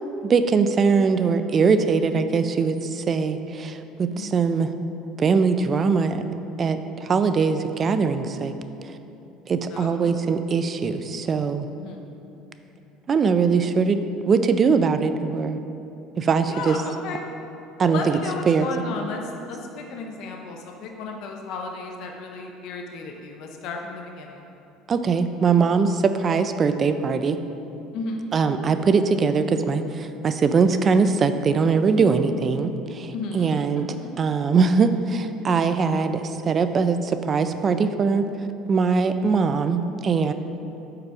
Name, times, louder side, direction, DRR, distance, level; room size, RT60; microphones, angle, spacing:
voice 1, 0.2-4.7 5.2-6.3 6.6-8.5 9.5-11.7 13.1-15.6 16.2-16.8 17.8-18.2 18.5-18.7 24.9-27.4 28.3-33.9 34.2-38.3 38.7-40.3, right 5 dB, 35° right, 9 dB, 0.3 m, -21 dB
voice 2, 4.1-4.4 9.7-10.2 11.8-12.1 16.4-17.3 17.8-24.5 27.9-28.2 33.1-33.5, left 3 dB, 65° left, 2 dB, 0.6 m, -34 dB
4.8 x 4.5 x 4.9 m, 3.0 s
supercardioid pair, 95°, 0 cm